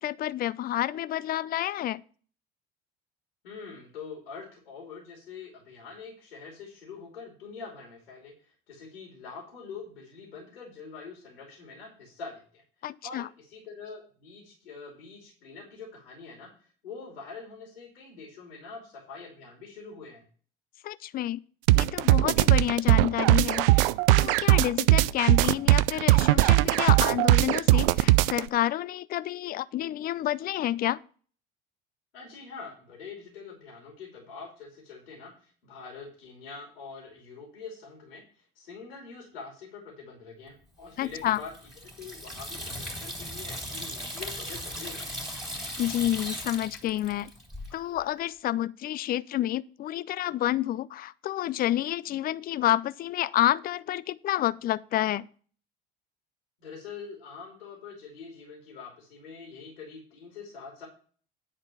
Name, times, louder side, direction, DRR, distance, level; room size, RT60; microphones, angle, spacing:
voice 1, 0.0-2.0 12.8-13.3 20.8-21.4 21.8-31.0 41.0-41.4 45.8-47.3 47.7-55.3, left 13 dB, 30° left, 0.4 m, -29 dB
voice 2, 3.4-12.6 13.0-20.2 32.1-41.5 42.0-45.2 56.6-60.9, left 5 dB, 80° left, 2.9 m, -44 dB
sound 1, 21.7-28.5, right 18 dB, 65° right, 0.4 m, -20 dB
Water tap faucet / Sink (filling or washing), 41.0-47.7, equal, ahead, 2.8 m, -38 dB
10.0 x 4.4 x 7.0 m
figure-of-eight pair, 65°, 30 cm